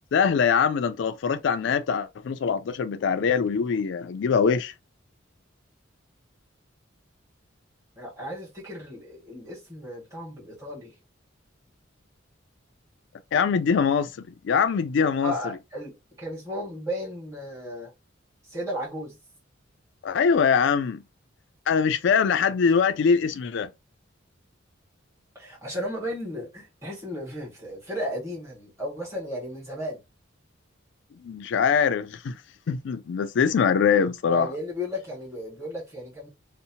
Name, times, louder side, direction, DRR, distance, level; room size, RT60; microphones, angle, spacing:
voice 1, 0.1-4.7 13.3-14.1 14.4-15.6 20.0-21.0 21.7-23.7 31.2-32.3 32.7-34.5, left 6 dB, 65° left, 0.3 m, -23 dB
voice 2, 8.0-10.9 15.2-17.9 18.5-19.2 25.3-30.0 34.3-36.3, equal, 15° right, 1.2 m, -34 dB
2.7 x 2.1 x 2.8 m
head